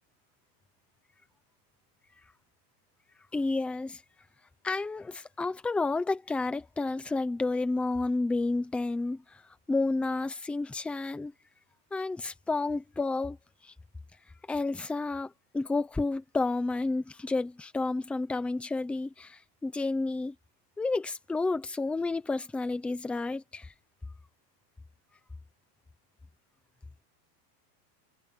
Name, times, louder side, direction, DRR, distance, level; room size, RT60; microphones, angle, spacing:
voice 1, 3.3-4.0 4.6-9.2 9.7-11.3 11.9-13.4 14.5-20.3 20.8-23.7, left 3 dB, 5° left, 0.6 m, -30 dB
supercardioid pair, 175°, 48 cm